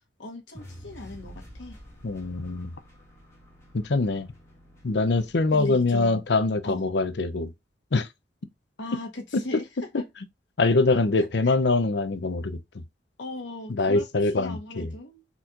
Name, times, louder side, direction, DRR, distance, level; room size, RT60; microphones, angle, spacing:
voice 1, 0.2-1.8 5.5-6.2 6.6-6.9 8.8-10.0 11.2-11.5 13.2-15.3, left 2 dB, 85° left, 1.3 m, -39 dB
sound 1, 0.5-6.7, equal, 15° left, 1.6 m, -49 dB
voice 2, 2.0-2.7 3.7-4.3 4.8-7.5 7.9-8.1 10.6-12.6 13.7-14.9, left 3 dB, 70° left, 0.6 m, -24 dB
4.3 x 4.1 x 2.5 m
head